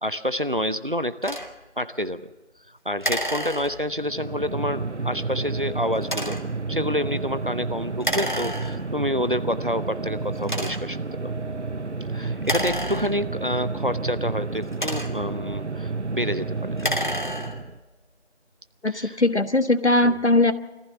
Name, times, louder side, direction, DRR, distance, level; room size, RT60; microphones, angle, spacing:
voice 1, 0.0-1.4 1.8-2.3 2.7-6.4 6.7-11.0 11.2-11.3 12.1-17.1 18.9-19.2 20.0-20.2, equal, 45° right, 14 dB, 0.8 m, -28 dB
sound 1, 1.2-1.5 3.0-4.1 6.0-6.6 8.0-9.0 9.7-9.8 10.4-11.0 12.4-13.5 14.5-15.4 16.7-17.8, equal, 40° left, 1.7 m, -30 dB
sound 2, 3.9-17.8, right 3 dB, 75° right, 0.9 m, -31 dB
voice 2, 18.8-20.5, left 2 dB, 70° left, 11 dB, 1.3 m, -20 dB
24.5 x 15.0 x 7.1 m, 1.1 s
figure-of-eight pair, 180°, 35 cm